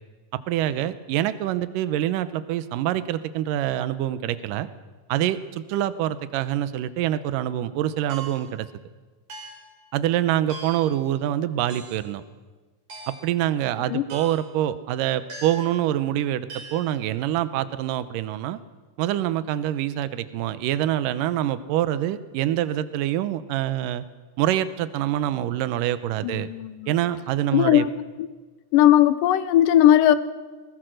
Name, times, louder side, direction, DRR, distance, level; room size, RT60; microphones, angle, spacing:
voice 1, 0.5-4.7 5.1-8.7 9.9-12.2 13.2-18.6 19.0-24.0 24.4-26.5 26.9-27.8, right 12 dB, 80° right, 14 dB, 2.4 m, -25 dB
sound 1, 8.1-8.6 9.3-9.7 10.5-11.0 11.7-12.1 12.9-13.4 14.1-14.5 15.3-15.8 16.5-16.9, right 3 dB, 60° right, 5.5 m, -40 dB
voice 2, 26.2-26.9 27.5-27.9 28.2-28.3 28.7-30.1, left 12 dB, 80° left, 14 dB, 2.4 m, -18 dB
21.0 x 20.0 x 6.4 m, 1.4 s
omnidirectional pair, 3.9 m